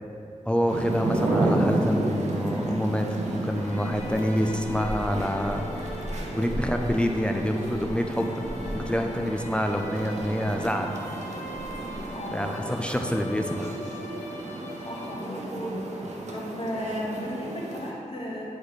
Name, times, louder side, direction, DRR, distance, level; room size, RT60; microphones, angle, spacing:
voice 1, 0.5-5.7 6.3-8.4 8.7-10.9 12.3-13.7, equal, 10° left, 3 dB, 0.4 m, -27 dB
sound 1, 0.7-17.9, right 2 dB, 70° right, 0.8 m, -32 dB
sound 2, 0.8-13.2, equal, 25° left, 1.0 m, -41 dB
sound 3, 3.6-15.6, equal, 90° left, 0.9 m, -42 dB
voice 2, 12.1-12.6 14.8-16.0 16.3-18.4, equal, 50° left, -5 dB, 1.5 m, -35 dB
9.9 x 4.1 x 3.2 m, 2.9 s
cardioid pair, 60°, 12 cm